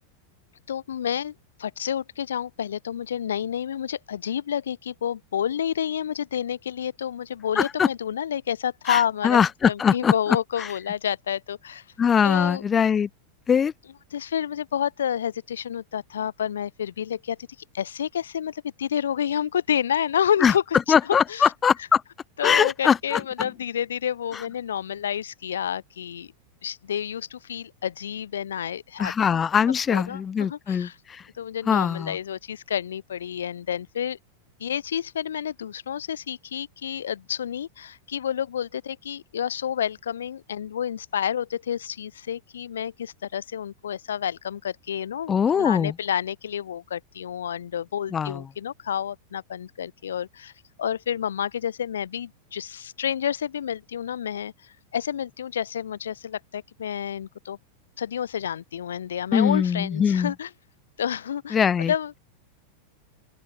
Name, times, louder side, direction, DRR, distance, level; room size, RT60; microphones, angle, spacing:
voice 1, 0.7-1.3 1.6-9.4 9.7-11.8 12.2-12.6 14.1-17.4 17.7-20.6 21.3-21.5 22.4-26.3 26.6-29.4 29.9-31.0 31.4-34.2 34.6-50.5 50.8-57.6 58.0-60.5 61.0-62.2, left 9 dB, 65° left, 1.3 m, -29 dB
voice 2, 7.6-7.9 8.9-10.1 10.6-10.7 12.0-13.1 13.5-13.7 20.4-20.5 20.9-22.0 22.4-23.2 29.0-31.3 31.7-32.2 45.3-45.9 48.1-48.4 59.3-60.3 61.5-61.9, left 7 dB, 20° left, 0.9 m, -22 dB
open air
figure-of-eight pair, 90°, 0 cm